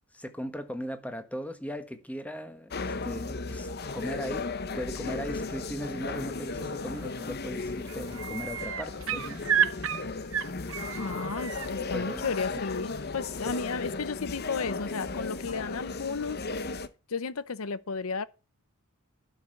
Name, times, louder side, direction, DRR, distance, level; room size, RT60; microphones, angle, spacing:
voice 1, 0.1-4.4 4.7-9.4 11.9-12.6, equal, 5° left, 1.4 m, -38 dB
sound 1, 2.7-16.9, left 3 dB, 50° left, 0.9 m, -35 dB
sound 2, 7.0-7.3 7.6-11.7 13.3-13.4, right 8 dB, 65° right, 1.0 m, -31 dB
voice 2, 10.9-16.4 17.1-18.3, left 4 dB, 80° left, 0.8 m, -33 dB
12.0 x 5.6 x 7.9 m
head